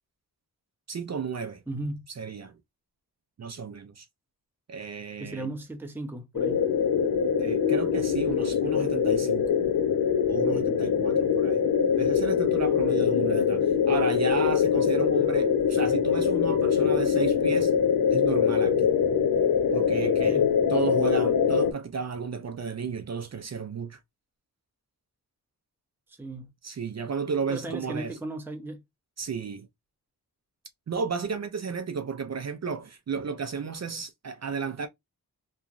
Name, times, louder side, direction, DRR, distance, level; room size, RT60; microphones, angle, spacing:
voice 1, 0.9-1.6 2.2-2.6 3.4-4.1 4.7-5.5 7.4-9.5 10.3-11.6 11.9-17.7 18.1-18.9 19.7-24.0 26.6-28.2 29.2-29.7 30.9-34.9, right 5 dB, 45° right, 0.5 m, -33 dB
voice 2, 1.7-2.0 5.2-6.7 20.3-20.5 26.1-26.5 27.5-28.8, right 2 dB, 5° right, 0.7 m, -36 dB
sound 1, 6.3-21.7, left 7 dB, 60° left, 0.6 m, -23 dB
3.0 x 2.4 x 2.4 m
cardioid pair, 60°, 38 cm